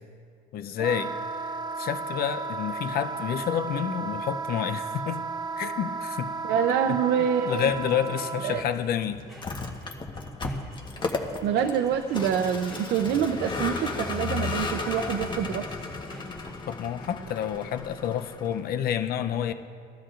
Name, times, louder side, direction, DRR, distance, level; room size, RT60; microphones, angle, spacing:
voice 1, 0.5-1.1 1.4-1.5 1.8-5.2 5.6-6.4 7.5-9.2 16.7-19.5, left 9 dB, 65° left, 9 dB, 0.7 m, -29 dB
Wind instrument woodwind instrument, 0.8-8.6, right 4 dB, 25° right, 0.4 m, -34 dB
sound 1, 5.3-17.0, right 1 dB, ahead, 2.0 m, -49 dB
voice 2, 6.4-7.7 8.4-8.6 11.4-15.7, right 8 dB, 80° right, 6 dB, 0.6 m, -26 dB
Vehicle, 9.3-18.7, left 3 dB, 30° left, 1.2 m, -34 dB
19.0 x 12.5 x 2.5 m, 2.2 s
cardioid pair, 110°, 17 cm